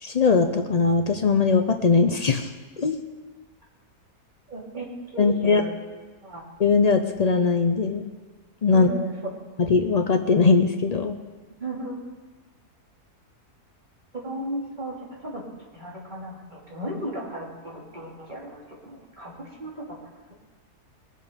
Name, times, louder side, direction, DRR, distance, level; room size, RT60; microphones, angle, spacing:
voice 1, 0.0-2.5 2.8-3.0 5.2-5.6 6.6-8.1 8.6-8.9 9.6-11.2, left 4 dB, 75° left, 6 dB, 0.3 m, -20 dB
voice 2, 4.5-5.7 6.2-6.5 8.7-9.3 11.6-12.0 14.1-15.4 15.7-20.0, right 1 dB, 30° right, -4 dB, 2.8 m, -35 dB
20.5 x 7.6 x 5.1 m, 1.3 s
omnidirectional pair, 1.7 m